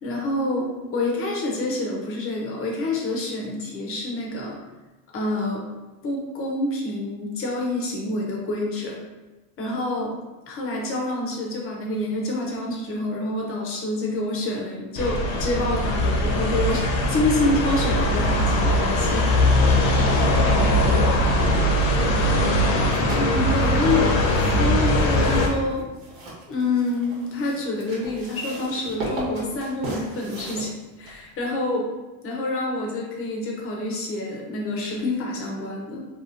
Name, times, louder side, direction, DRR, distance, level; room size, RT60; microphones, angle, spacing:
voice 1, 0.0-4.6 5.1-5.7 6.0-9.0 9.6-10.2 10.5-19.3 19.8-20.0 23.2-25.8 26.5-30.7 31.0-31.9 32.2-36.1, left 2 dB, 35° left, -1 dB, 0.5 m, -27 dB
sound 1, 15.0-25.5, left 1 dB, 75° left, 0.7 m, -21 dB
voice 2, 19.9-22.7, right 1 dB, 45° right, 1 dB, 0.5 m, -33 dB
sound 2, 22.8-31.4, right 1 dB, 75° right, 1.1 m, -37 dB
2.8 x 2.7 x 2.4 m, 1.1 s
cardioid pair, 135°, 40 cm